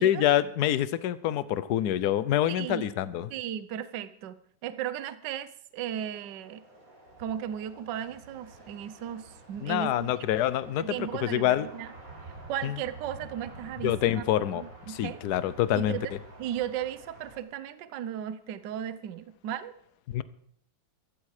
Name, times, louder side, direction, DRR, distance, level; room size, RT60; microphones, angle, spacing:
voice 1, 0.0-3.3 9.6-11.7 12.6-12.8 13.8-16.0 20.1-20.2, left 12 dB, 65° left, 16 dB, 1.1 m, -26 dB
voice 2, 2.5-2.9 3.3-4.4 4.6-6.6 7.2-10.1 10.8-11.9 12.5-14.2 14.6-15.2 15.7-16.1 16.4-19.7, right 10 dB, 65° right, 14 dB, 1.3 m, -36 dB
sound 1, 5.9-17.4, right 2 dB, 40° right, 5.5 m, -49 dB
16.0 x 13.0 x 4.9 m, 0.66 s
omnidirectional pair, 2.2 m